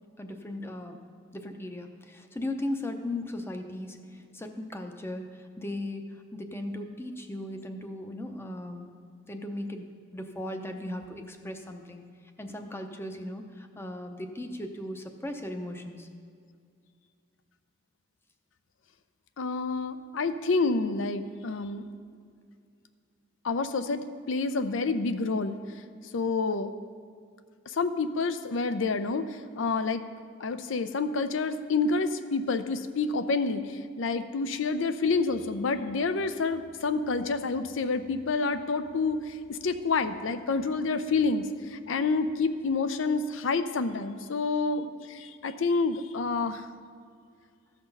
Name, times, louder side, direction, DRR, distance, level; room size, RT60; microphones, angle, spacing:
voice 1, 0.2-1.0 1.3-6.0 6.3-8.9 9.3-12.0 12.4-16.1, left 1 dB, 10° left, 5 dB, 0.6 m, -37 dB
voice 2, 19.4-21.8 23.4-25.6 26.1-26.7 27.8-29.3 29.6-30.0 30.4-33.6 34.0-39.2 39.5-46.6, left 4 dB, 75° left, 11 dB, 0.5 m, -28 dB
13.5 x 5.9 x 5.4 m, 2.2 s
head